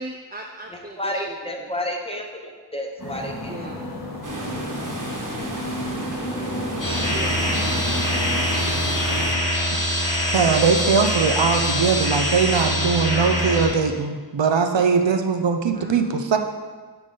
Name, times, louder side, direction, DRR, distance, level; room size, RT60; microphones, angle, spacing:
voice 1, 0.0-1.3 3.5-3.8 7.1-7.5 15.7-16.0, right 1 dB, 20° right, 2 dB, 0.4 m, -37 dB
voice 2, 1.0-3.5, left 1 dB, 15° left, 1 dB, 0.9 m, -30 dB
sound 1, 3.0-8.4, left 1 dB, 45° left, 1.9 m, -32 dB
sound 2, 4.2-9.3, right 1 dB, 45° right, 1.3 m, -32 dB
sound 3, 6.8-13.7, left 1 dB, 80° left, 2.1 m, -23 dB
voice 3, 10.3-16.4, right 5 dB, 80° right, 6 dB, 0.6 m, -21 dB
10.0 x 3.9 x 3.9 m, 1.4 s
wide cardioid pair, 50°, 43 cm